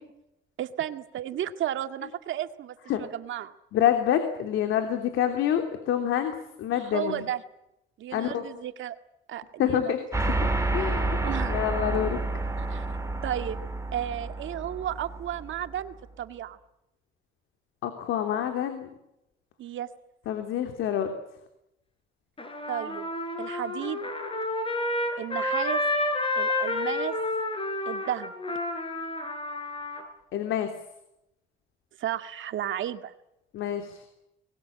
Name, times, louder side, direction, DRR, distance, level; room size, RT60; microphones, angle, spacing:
voice 1, 0.6-3.5 6.8-7.4 8.0-9.0 9.3-9.9 11.2-11.6 12.6-12.9 13.2-13.6 13.9-16.6 19.6-19.9 22.7-23.1 23.4-24.1 25.2-25.8 26.4-27.2 27.9-28.3 32.0-33.1, right 11 dB, 75° right, 9 dB, 2.0 m, -33 dB
voice 2, 3.7-7.2 8.1-8.4 9.6-10.0 10.7-11.2 11.5-12.2 17.8-18.9 20.3-21.1 30.3-30.7 33.5-34.0, left 10 dB, 85° left, 6 dB, 3.1 m, -27 dB
sound 1, 10.1-15.9, right 2 dB, 15° right, 3.9 m, -30 dB
Trumpet, 22.4-30.0, left 2 dB, 25° left, 6.0 m, -30 dB
25.0 x 21.0 x 8.8 m, 0.84 s
cardioid pair, 90°, 20 cm